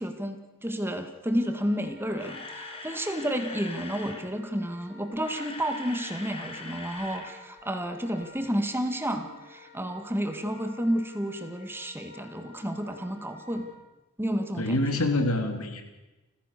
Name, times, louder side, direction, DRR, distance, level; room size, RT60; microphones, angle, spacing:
voice 1, 0.0-13.6 14.2-15.0, equal, 10° right, 6 dB, 2.0 m, -31 dB
Wind instrument woodwind instrument, 1.3-13.7, left 3 dB, 25° right, 5.9 m, -52 dB
Camera, 1.9-4.3 5.0-7.3 7.6-7.7 8.2-8.3, left 3 dB, 25° left, 2.9 m, -42 dB
voice 2, 14.6-15.8, left 2 dB, 85° left, 6 dB, 3.1 m, -26 dB
29.5 x 16.0 x 6.8 m, 1.1 s
head